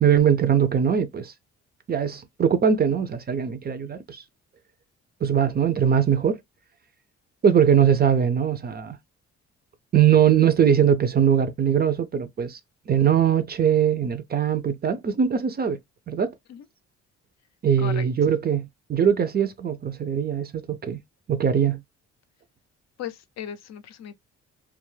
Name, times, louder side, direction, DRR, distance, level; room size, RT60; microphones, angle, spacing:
voice 1, 0.0-1.3 1.9-4.2 5.2-6.4 7.4-9.0 9.9-12.6 12.9-15.8 16.1-16.3 17.6-21.0 21.3-21.8, right 8 dB, 35° right, 0.4 m, -21 dB
voice 2, 23.0-24.1, left 9 dB, 60° left, 0.5 m, -36 dB
2.2 x 2.0 x 3.1 m
cardioid pair, 90°, 30 cm